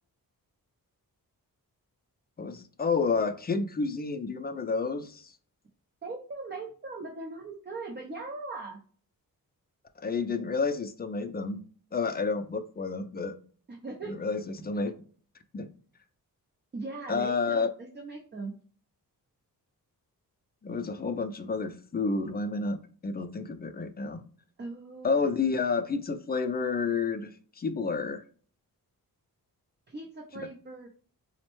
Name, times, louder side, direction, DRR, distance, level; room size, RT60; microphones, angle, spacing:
voice 1, 2.4-5.3 10.0-11.6 11.9-13.3 14.1-14.9 15.5-15.7 17.1-17.7 20.6-24.2 25.0-27.3 27.6-28.2 30.4-30.5, left 4 dB, 25° left, 8 dB, 0.4 m, -30 dB
voice 2, 6.0-8.8 13.7-14.1 16.7-18.5 24.6-25.2 29.9-30.9, right 3 dB, 30° right, 1 dB, 0.6 m, -39 dB
4.1 x 2.1 x 3.0 m, 0.43 s
wide cardioid pair, 95°, 37 cm